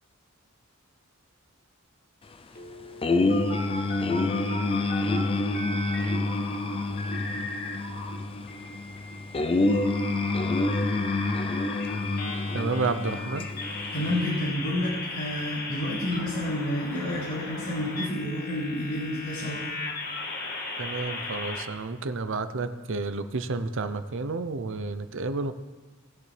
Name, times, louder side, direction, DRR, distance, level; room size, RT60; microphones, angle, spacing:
sound 1, 2.5-5.2 5.5-8.1 8.5-21.6, left 2 dB, 45° left, 1.6 m, -37 dB
sound 2, 3.0-14.2, left 2 dB, 25° left, 0.5 m, -27 dB
voice 1, 12.5-13.5 20.8-25.5, right 3 dB, 60° right, 11 dB, 0.7 m, -30 dB
voice 2, 13.9-19.6, left 1 dB, 80° left, -8 dB, 2.9 m, -29 dB
19.0 x 7.4 x 3.3 m, 1.3 s
head